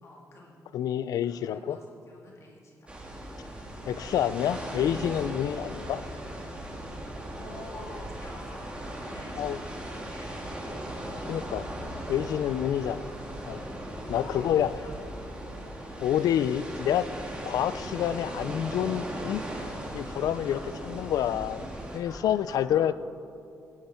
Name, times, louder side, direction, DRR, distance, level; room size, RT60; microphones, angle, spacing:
voice 1, 0.0-0.6 1.2-3.0 7.3-8.7 9.0-9.6 9.9-10.8 12.4-13.0 14.1-15.3 20.5-20.6 22.0-22.9, left 2 dB, 50° left, -3 dB, 2.4 m, -49 dB
voice 2, 0.7-1.8 3.8-6.0 9.4-9.6 11.3-11.7 12.1-13.1 13.5-13.6 14.1-14.7 16.0-17.1 17.5-19.5 19.9-22.9, left 10 dB, 80° left, 16 dB, 0.4 m, -28 dB
sound 1, 2.9-22.0, right 1 dB, 15° right, 2.6 m, -38 dB
17.5 x 10.5 x 4.4 m, 2.7 s
cardioid pair, 95°, 6 cm